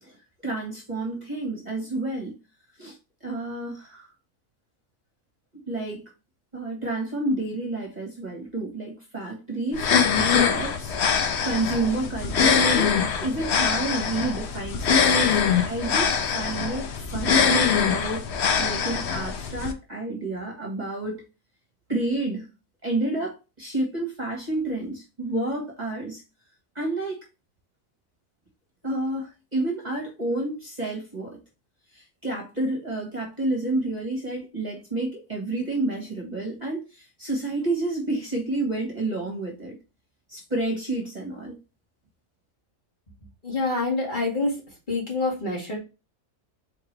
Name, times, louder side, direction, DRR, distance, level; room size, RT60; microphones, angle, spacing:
voice 1, 0.4-2.3 2.8-4.1 5.7-6.1 6.5-10.9 11.4-21.2 21.9-22.5 22.8-26.2 26.7-27.2 28.8-31.4 31.9-39.8 40.3-41.6, right 2 dB, 35° right, 1.3 m, -30 dB
sound 1, 9.7-19.7, left 6 dB, 60° left, 0.9 m, -23 dB
voice 2, 43.4-44.6 44.9-45.8, left 3 dB, 35° left, 2.3 m, -26 dB
4.6 x 3.6 x 3.1 m
omnidirectional pair, 1.4 m